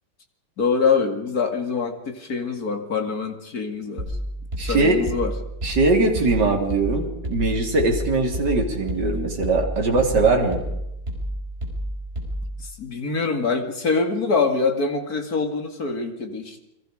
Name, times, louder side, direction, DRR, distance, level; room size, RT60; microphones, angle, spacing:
voice 1, 0.6-4.2 4.7-5.3 12.6-16.6, left 4 dB, 50° left, 6 dB, 2.7 m, -24 dB
sound 1, 4.0-12.7, right 1 dB, 30° right, 5.5 m, -30 dB
voice 2, 4.6-5.0 5.6-10.6, right 3 dB, 60° right, 1 dB, 3.8 m, -21 dB
29.5 x 22.0 x 5.1 m, 0.84 s
omnidirectional pair, 2.1 m